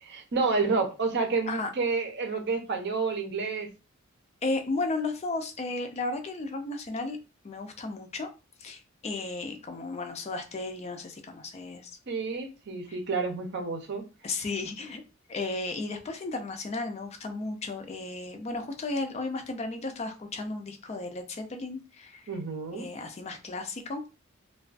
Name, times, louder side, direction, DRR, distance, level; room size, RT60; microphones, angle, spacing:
voice 1, 0.0-3.7 12.1-14.0 22.3-22.9, right 4 dB, 60° right, 0.6 m, -29 dB
voice 2, 4.4-7.2 7.4-8.3 8.6-11.9 12.9-13.0 14.2-15.0 15.3-22.3 22.7-24.0, left 3 dB, 35° left, 0.4 m, -34 dB
2.2 x 2.2 x 2.4 m
head